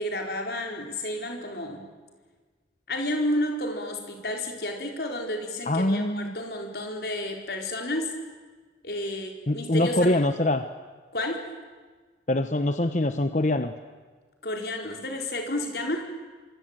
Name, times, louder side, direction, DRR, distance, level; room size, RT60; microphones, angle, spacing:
voice 1, 0.0-1.9 2.9-8.2 8.8-10.3 11.1-11.5 14.4-16.0, left 1 dB, 60° left, 2 dB, 4.6 m, -31 dB
voice 2, 5.7-6.3 9.5-10.6 12.3-13.7, left 1 dB, 40° left, 8 dB, 1.0 m, -24 dB
25.5 x 25.0 x 9.1 m, 1.4 s
head